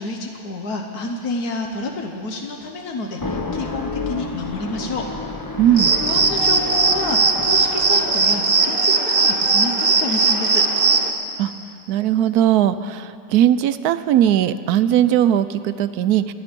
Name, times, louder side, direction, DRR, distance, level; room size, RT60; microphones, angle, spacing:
voice 1, 0.0-5.0 6.0-10.6, left 3 dB, 85° left, 3 dB, 1.5 m, -29 dB
sound 1, 3.1-8.8, left 3 dB, 30° left, 0.4 m, -31 dB
voice 2, 5.6-5.9 11.4-11.5 11.9-16.3, right 11 dB, 90° right, 13 dB, 1.1 m, -18 dB
sound 2, 5.8-11.1, right 4 dB, 40° right, 1.2 m, -18 dB
28.0 x 9.9 x 5.2 m, 2.7 s
omnidirectional pair, 1.6 m